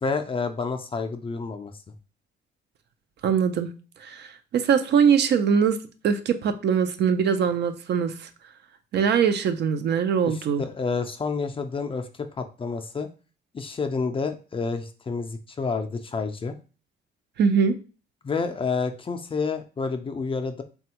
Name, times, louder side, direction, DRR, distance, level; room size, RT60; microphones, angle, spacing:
voice 1, 0.0-1.9 10.2-13.1 13.5-16.6 18.2-20.6, left 4 dB, 25° left, 7 dB, 0.4 m, -29 dB
voice 2, 3.2-3.7 4.0-5.8 6.0-8.3 8.9-10.6 17.4-17.8, right 7 dB, 60° right, 9 dB, 0.4 m, -22 dB
3.2 x 2.2 x 2.8 m, 0.35 s
cardioid pair, 90°, 20 cm